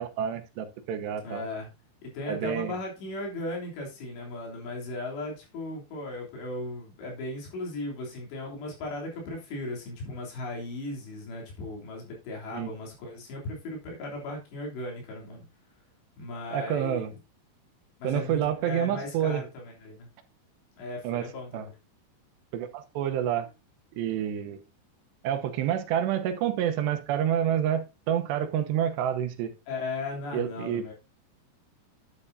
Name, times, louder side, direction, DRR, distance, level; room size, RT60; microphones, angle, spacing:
voice 1, 0.0-1.4 2.3-2.7 12.5-12.7 16.5-17.1 18.0-19.4 21.0-21.3 21.5-21.7 22.5-23.5 23.9-24.6 25.2-29.5 30.3-30.8, right 10 dB, 80° right, 3.1 m, -28 dB
voice 2, 1.2-1.7 2.0-15.5 16.2-17.2 18.0-20.1 20.8-21.8 29.7-30.9, left 2 dB, 80° left, 5.4 m, -37 dB
10.5 x 10.0 x 2.7 m
omnidirectional pair, 4.9 m